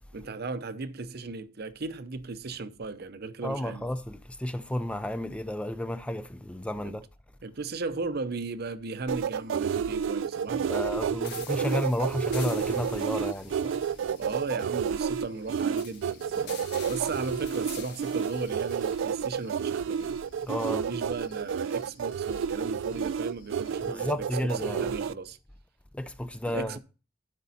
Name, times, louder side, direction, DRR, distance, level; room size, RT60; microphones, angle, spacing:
voice 1, 0.1-3.8 6.8-7.0 7.4-10.9 14.1-16.6 16.9-20.2 20.7-25.4 26.5-26.8, right 3 dB, 55° right, 0.7 m, -36 dB
voice 2, 3.4-7.0 10.5-13.8 20.4-20.9 23.9-24.9 25.9-26.8, left 1 dB, 5° left, 0.4 m, -32 dB
sound 1, 9.1-25.1, right 7 dB, 75° right, 0.3 m, -30 dB
Cricket, 9.7-23.9, left 3 dB, 75° left, 1.8 m, -59 dB
sound 2, 11.2-20.1, left 7 dB, 55° left, 1.5 m, -48 dB
12.0 x 5.3 x 4.1 m
head